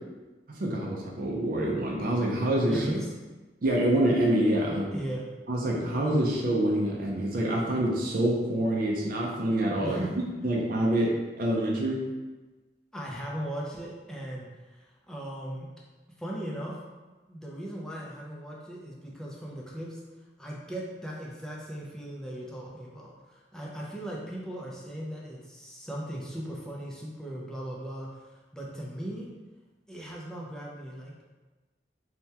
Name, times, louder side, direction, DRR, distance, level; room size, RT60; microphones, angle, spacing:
voice 1, 0.5-2.9 3.6-4.9 5.5-10.0 10.4-12.0, right 1 dB, 50° right, -2 dB, 0.5 m, -26 dB
voice 2, 2.7-3.1 4.9-5.3 9.8-10.2 12.9-15.7 16.2-16.8 17.3-20.0 20.4-29.3 29.9-31.3, right 1 dB, 5° left, -4 dB, 0.4 m, -38 dB
3.3 x 2.2 x 2.7 m, 1.2 s
head